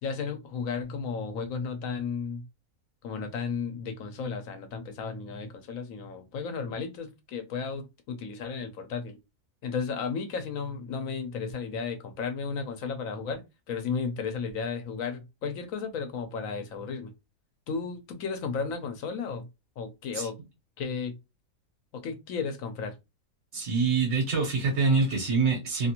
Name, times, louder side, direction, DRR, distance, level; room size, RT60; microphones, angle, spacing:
voice 1, 0.0-2.4 3.0-9.2 9.6-13.4 13.7-17.1 17.7-19.5 19.8-20.4 20.8-21.2 21.9-23.0, left 5 dB, 75° left, 1.1 m, -34 dB
voice 2, 23.5-25.9, right 4 dB, 55° right, 1.2 m, -25 dB
2.8 x 2.5 x 2.8 m
omnidirectional pair, 1.4 m